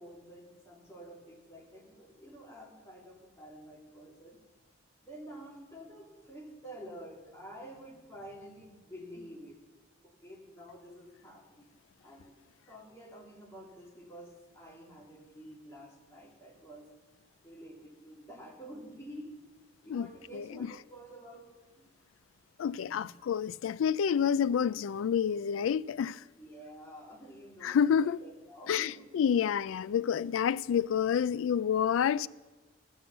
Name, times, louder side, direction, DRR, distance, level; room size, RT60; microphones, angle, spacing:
voice 1, 0.0-4.4 5.0-9.6 10.0-11.7 12.0-12.3 12.7-16.9 17.4-19.5 19.8-21.9 22.7-23.1 26.4-29.1 29.3-29.5, equal, 15° left, 2.6 m, -49 dB
voice 2, 22.6-26.2 27.6-28.2 28.7-32.3, left 8 dB, 90° left, 0.3 m, -28 dB
14.0 x 7.5 x 7.1 m
head